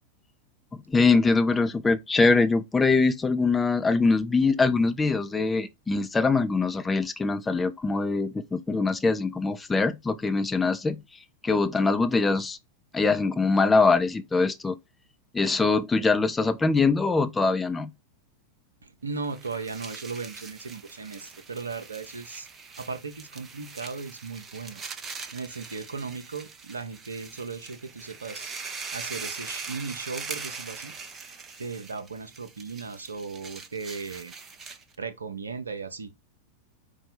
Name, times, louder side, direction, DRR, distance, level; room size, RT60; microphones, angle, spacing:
voice 1, 0.9-11.0 11.4-12.6 12.9-14.8 15.3-17.9, left 4 dB, 10° left, 0.5 m, -23 dB
voice 2, 18.8-22.5 22.8-24.8 25.3-28.5 28.9-30.9 31.6-34.3 35.0-36.1, right 4 dB, 75° right, 0.7 m, -37 dB
sound 1, 19.2-35.0, right 5 dB, 25° right, 0.7 m, -42 dB
5.2 x 2.3 x 4.3 m
figure-of-eight pair, 90°, 0 cm